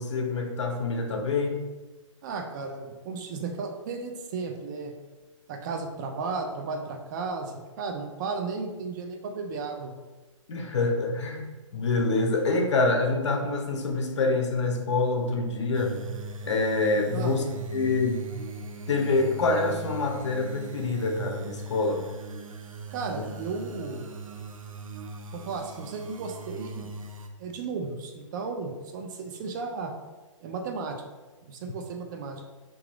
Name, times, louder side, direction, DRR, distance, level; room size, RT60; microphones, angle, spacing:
voice 1, 0.0-1.6 10.5-16.0 16.4-17.5 17.7-18.2 18.9-22.0, left 3 dB, 60° left, 3 dB, 0.9 m, -26 dB
voice 2, 2.2-5.0 5.5-10.0 17.1-17.4 22.9-24.1 25.3-26.9 27.4-29.9 30.4-31.0 31.5-32.5, right 4 dB, 35° right, 3 dB, 0.6 m, -34 dB
sound 1, 15.7-27.3, right 3 dB, 85° right, 0.6 m, -40 dB
3.8 x 2.9 x 4.7 m, 1.2 s
hypercardioid pair, 140°, 17 cm